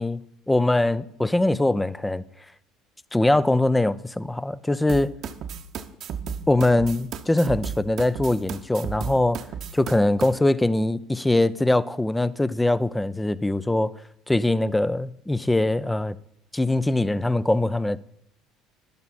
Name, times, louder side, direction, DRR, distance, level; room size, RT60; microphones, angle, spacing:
voice 1, 0.0-2.2 3.1-5.2 6.5-9.5 9.7-13.9 14.3-16.2 16.5-18.0, left 2 dB, 10° left, 0.5 m, -22 dB
sound 1, 4.9-10.3, right 7 dB, 50° right, 0.9 m, -34 dB
12.0 x 11.5 x 4.2 m
figure-of-eight pair, 60°, 0 cm